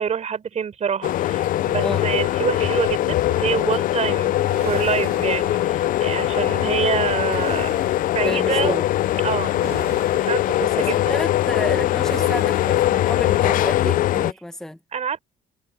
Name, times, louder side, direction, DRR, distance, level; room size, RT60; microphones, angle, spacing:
voice 1, 0.0-7.7 8.1-8.8 9.2-9.7 10.1-11.2 14.9-15.2, right 7 dB, 40° right, 4.6 m, -26 dB
sound 1, 1.0-14.3, left 14 dB, 55° left, 0.4 m, -21 dB
sound 2, 2.2-7.9, right 18 dB, 90° right, 7.1 m, -50 dB
sound 3, 4.4-6.0 7.3-8.3 9.5-10.6 12.0-13.0, right 12 dB, 65° right, 3.0 m, -39 dB
voice 2, 8.2-8.8 10.6-14.8, left 1 dB, 5° left, 1.2 m, -30 dB
cardioid pair, 110°, 17 cm